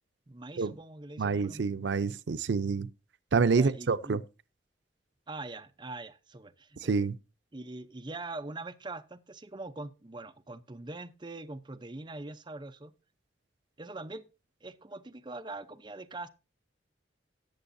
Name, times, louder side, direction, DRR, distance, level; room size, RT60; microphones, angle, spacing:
voice 1, 0.3-1.7 3.4-4.2 5.3-6.9 7.5-12.9 13.8-14.3 14.6-16.3, right 2 dB, 25° right, 0.7 m, -43 dB
voice 2, 1.2-2.9 3.3-4.2 6.8-7.2, right 4 dB, 90° right, 0.5 m, -27 dB
18.5 x 7.0 x 2.6 m
head